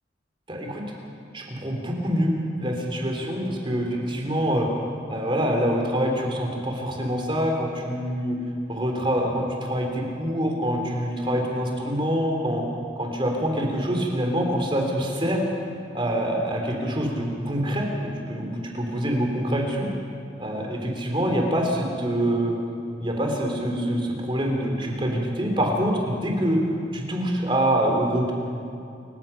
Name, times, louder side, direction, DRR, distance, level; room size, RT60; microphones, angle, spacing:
voice 1, 0.5-0.8 1.3-4.7 5.1-8.4 8.7-12.6 13.0-15.4 15.9-17.9 18.3-19.9 20.4-22.5 23.0-26.6 26.9-28.3, equal, 30° right, 1 dB, 3.4 m, -25 dB
28.5 x 16.0 x 5.9 m, 2.5 s
head